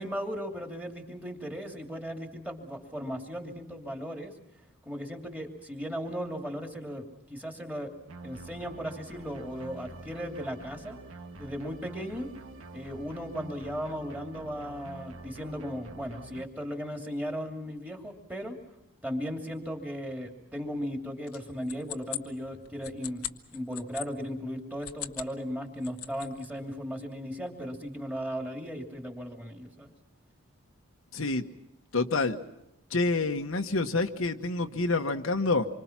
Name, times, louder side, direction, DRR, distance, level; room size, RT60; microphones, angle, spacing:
voice 1, 0.0-4.3 4.9-7.9 8.2-11.0 11.4-12.3 12.7-18.6 19.0-23.3 23.5-29.9, equal, 5° right, 3 dB, 2.7 m, -36 dB
sound 1, 8.1-16.4, right 3 dB, 75° right, 1.4 m, -46 dB
sound 2, 21.3-24.1 24.7-25.4 25.7-26.5, left 12 dB, 85° left, 1.3 m, -40 dB
voice 2, 31.1-31.5 31.9-32.4 32.9-35.7, left 3 dB, 70° left, 5 dB, 1.2 m, -27 dB
27.0 x 24.5 x 5.9 m, 0.85 s
head